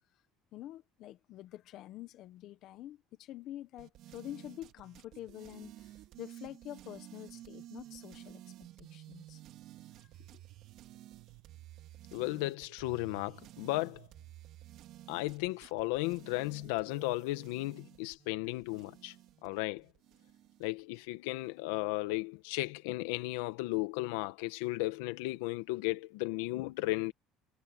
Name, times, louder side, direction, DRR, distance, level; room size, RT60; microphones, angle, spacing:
voice 1, 0.5-9.4 10.0-10.4, left 13 dB, 60° left, 1.5 m, -47 dB
sound 1, 3.8-21.0, right 14 dB, 60° right, 2.8 m, -53 dB
voice 2, 12.1-14.1 15.1-19.1 19.4-19.8 20.6-27.1, left 20 dB, 90° left, 1.6 m, -35 dB
supercardioid pair, 115°, 0 cm